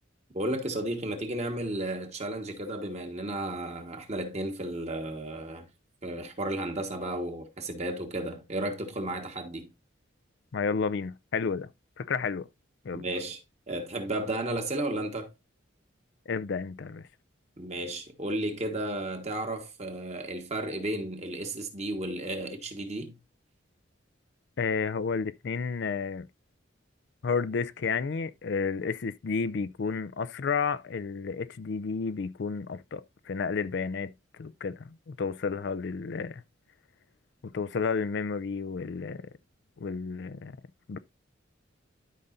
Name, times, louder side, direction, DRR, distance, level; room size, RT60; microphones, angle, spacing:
voice 1, 0.3-5.7 6.0-9.7 12.9-13.4 13.7-15.3 17.6-23.2, right 1 dB, 35° right, 1.5 m, -33 dB
voice 2, 10.5-11.7 12.0-12.5 12.8-13.0 16.3-17.1 24.6-26.3 27.2-34.1 34.4-36.4 37.5-39.3 39.8-40.6 40.9-41.0, left 5 dB, 60° left, 0.4 m, -31 dB
12.5 x 5.5 x 2.6 m
head